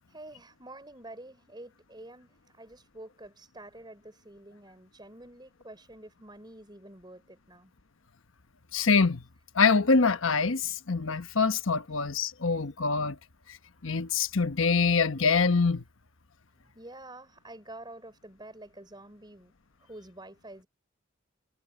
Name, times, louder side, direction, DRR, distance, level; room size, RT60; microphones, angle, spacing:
voice 1, 0.1-7.7 16.7-19.5 19.8-20.7, right 1 dB, 20° right, 6.2 m, -48 dB
voice 2, 8.7-9.2 9.5-13.2 13.5-13.6 13.8-15.8, left 4 dB, 75° left, 1.1 m, -25 dB
head